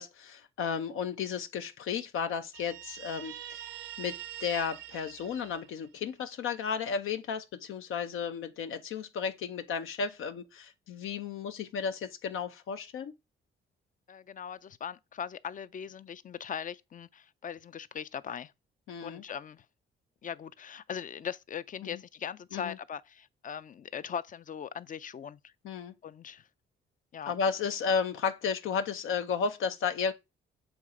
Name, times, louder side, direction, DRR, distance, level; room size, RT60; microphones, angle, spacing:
voice 1, 0.0-3.7 4.0-13.1 18.9-19.2 21.8-22.0 22.5-22.8 25.6-25.9 27.3-30.1, left 6 dB, 75° left, 0.7 m, -33 dB
Guitar, 2.5-6.1, right 12 dB, 70° right, 0.6 m, -44 dB
voice 2, 14.1-18.5 19.0-19.7 20.2-25.5 26.0-26.5 27.1-27.3, left 8 dB, 40° left, 0.5 m, -40 dB
7.3 x 3.2 x 4.9 m
cardioid pair, 80°, 21 cm